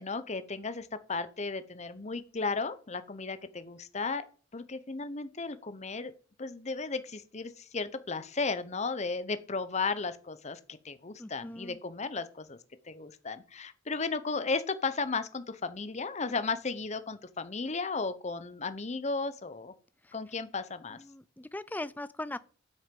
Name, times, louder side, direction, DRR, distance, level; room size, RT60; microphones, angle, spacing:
voice 1, 0.0-4.2 4.5-6.1 6.4-12.6 12.9-19.7 20.1-21.0, left 4 dB, 35° left, 0.8 m, -35 dB
voice 2, 11.2-11.8 20.0-20.1 20.9-22.4, left 1 dB, 10° left, 0.4 m, -40 dB
13.0 x 6.3 x 5.3 m
head